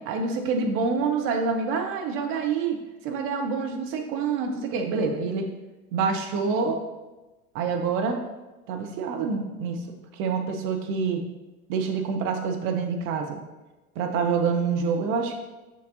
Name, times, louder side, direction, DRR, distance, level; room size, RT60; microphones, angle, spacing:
voice 1, 0.1-2.8 3.0-5.5 5.9-6.8 7.5-8.2 8.7-9.8 10.1-11.2 11.7-13.4 14.0-15.4, right 5 dB, 30° right, 4 dB, 0.5 m, -26 dB
6.5 x 6.3 x 2.6 m, 1.1 s
figure-of-eight pair, 80°, 44 cm